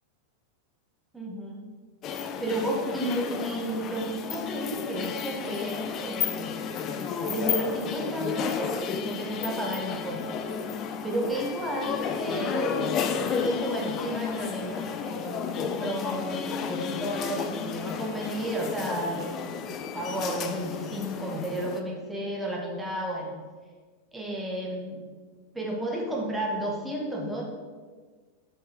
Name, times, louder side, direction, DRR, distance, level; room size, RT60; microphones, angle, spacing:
voice 1, 1.1-1.6 2.4-6.5 7.2-8.8 9.0-10.4 11.0-12.8 13.2-23.4 24.1-25.0 25.5-27.4, right 1 dB, 10° right, -1 dB, 1.6 m, -32 dB
sound 1, 2.0-21.8, left 7 dB, 35° left, 0.6 m, -32 dB
7.1 x 5.5 x 4.9 m, 1.5 s
figure-of-eight pair, 90°, 0 cm